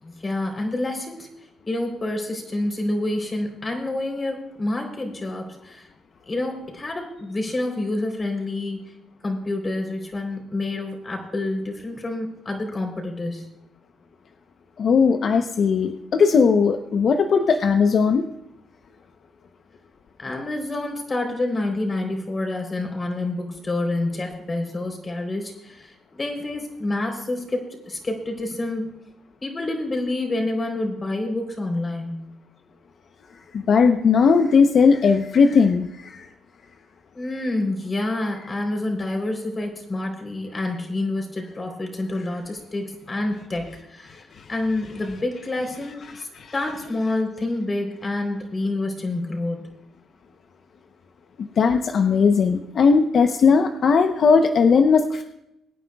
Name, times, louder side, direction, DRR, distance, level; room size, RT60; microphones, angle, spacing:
voice 1, 0.0-1.3 1.7-5.8 6.3-8.8 9.2-13.5 20.2-28.9 29.4-32.3 37.1-49.7, left 2 dB, 30° left, 3 dB, 3.7 m, -28 dB
voice 2, 14.8-18.3 33.5-36.3 44.4-44.5 46.3-46.5 51.4-55.2, left 5 dB, 55° left, 6 dB, 0.8 m, -18 dB
23.5 x 9.4 x 2.4 m, 0.84 s
cardioid pair, 90°, 0 cm